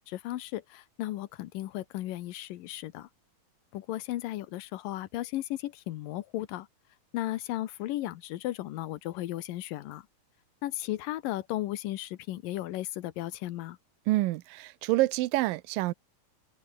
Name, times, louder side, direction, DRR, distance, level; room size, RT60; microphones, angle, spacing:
voice 1, 0.0-3.1 3.7-6.7 7.1-10.0 10.6-13.8, left 15 dB, 85° left, 2.7 m, -35 dB
voice 2, 14.1-15.9, right 18 dB, 85° right, 2.5 m, -27 dB
omnidirectional pair, 3.9 m